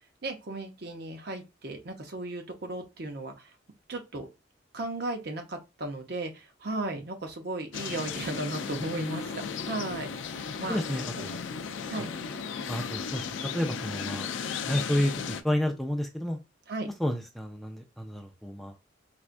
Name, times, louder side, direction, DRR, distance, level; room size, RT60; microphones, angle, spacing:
voice 1, 0.2-3.5 3.9-4.3 4.7-10.8 11.9-12.1 16.7-16.9, right 2 dB, 55° right, 0.7 m, -35 dB
sound 1, 7.7-15.4, left 6 dB, 85° left, 0.4 m, -35 dB
voice 2, 10.7-11.4 12.0-12.1 12.7-13.3 13.5-14.3 14.7-16.4 17.0-18.7, left 1 dB, ahead, 0.4 m, -30 dB
4.2 x 2.3 x 2.5 m
head